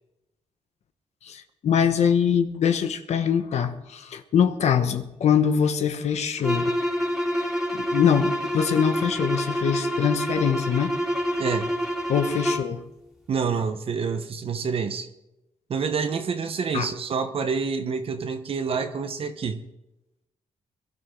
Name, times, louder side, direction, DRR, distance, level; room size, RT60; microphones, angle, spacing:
voice 1, 1.2-6.7 7.3-7.5 7.7-10.9 12.1-12.8 16.7-16.9, left 7 dB, 70° left, 9 dB, 1.2 m, -23 dB
sound 1, 6.4-12.7, equal, ahead, 3.0 m, -27 dB
voice 2, 11.4-11.8 13.3-15.1 15.7-19.6, right 5 dB, 55° right, 7 dB, 1.1 m, -27 dB
22.0 x 12.5 x 3.8 m, 0.92 s
cardioid pair, 105°, 12 cm